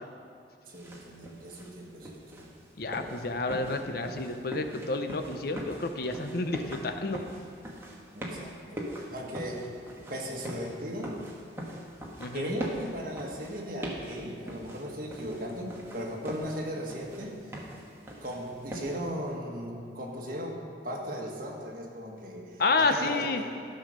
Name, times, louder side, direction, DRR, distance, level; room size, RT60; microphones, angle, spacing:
sound 1, 0.7-19.1, equal, 15° right, 1.4 m, -42 dB
voice 1, 0.7-2.5 8.1-9.7 10.1-11.2 12.3-17.4 18.2-23.5, equal, 50° right, -1 dB, 1.7 m, -37 dB
voice 2, 2.8-7.2 12.2-12.6 22.6-23.4, left 3 dB, 55° left, 7 dB, 0.7 m, -30 dB
13.5 x 5.6 x 6.5 m, 2.5 s
head